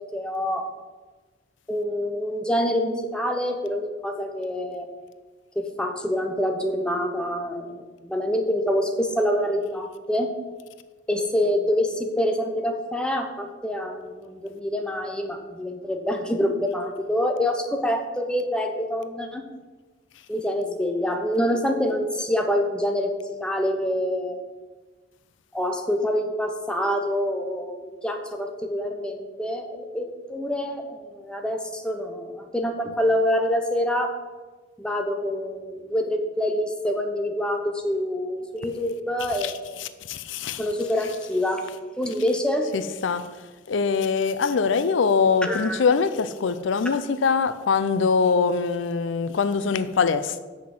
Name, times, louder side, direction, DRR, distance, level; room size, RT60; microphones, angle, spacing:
voice 1, 0.1-0.6 1.7-4.9 5.6-10.3 11.1-19.4 20.3-24.4 25.5-30.0 30.3-34.1 34.8-39.6 40.6-41.6 42.0-42.7 45.4-45.8, equal, 5° left, 0.8 m, -26 dB
voice 2, 39.8-40.6 42.7-43.2 43.7-50.4, left 5 dB, 80° left, 0.5 m, -23 dB
7.5 x 6.1 x 6.0 m
head